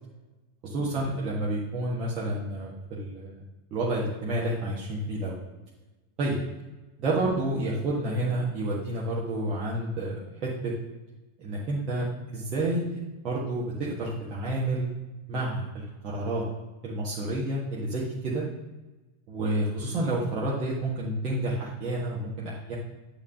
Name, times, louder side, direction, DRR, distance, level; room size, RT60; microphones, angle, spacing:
voice 1, 0.6-3.4 3.7-5.4 6.2-6.4 7.0-10.7 11.4-12.1 12.3-14.9 15.3-16.4 16.8-18.4 19.3-22.8, right 1 dB, 35° right, -6 dB, 1.5 m, -29 dB
9.2 x 3.4 x 6.5 m, 1.1 s
figure-of-eight pair, 90°, 0 cm